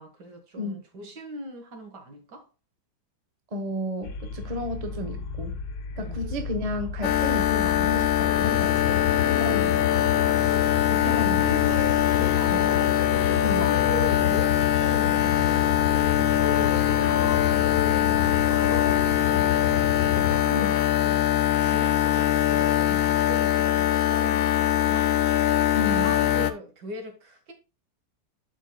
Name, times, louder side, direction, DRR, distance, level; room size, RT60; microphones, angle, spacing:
voice 1, 0.0-2.5 6.0-6.3 9.2-9.8 10.3-12.8 13.1-15.6 16.1-25.2 25.7-27.5, right 1 dB, 70° right, 2.2 m, -40 dB
voice 2, 3.5-5.6 6.0-9.0 9.4-9.9 10.9-11.4 12.5-12.7 13.4-13.7 20.5-20.7 25.7-26.2, left 1 dB, 25° right, 0.8 m, -32 dB
sound 1, 4.0-20.4, left 7 dB, 85° left, 1.5 m, -31 dB
sound 2, 7.0-26.5, left 12 dB, 65° left, 0.8 m, -22 dB
11.5 x 5.0 x 2.2 m
omnidirectional pair, 1.9 m